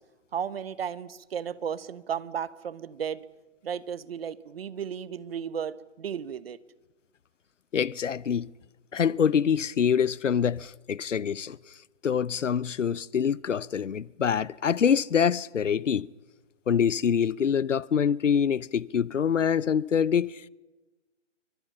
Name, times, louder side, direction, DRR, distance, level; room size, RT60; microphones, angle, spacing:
voice 1, 0.3-3.2 3.6-6.6, right 8 dB, 50° right, 1.2 m, -34 dB
voice 2, 7.7-8.5 8.9-11.6 12.0-16.1 16.7-20.5, left 7 dB, 70° left, 0.8 m, -25 dB
27.5 x 25.0 x 5.7 m
figure-of-eight pair, 140°, 38 cm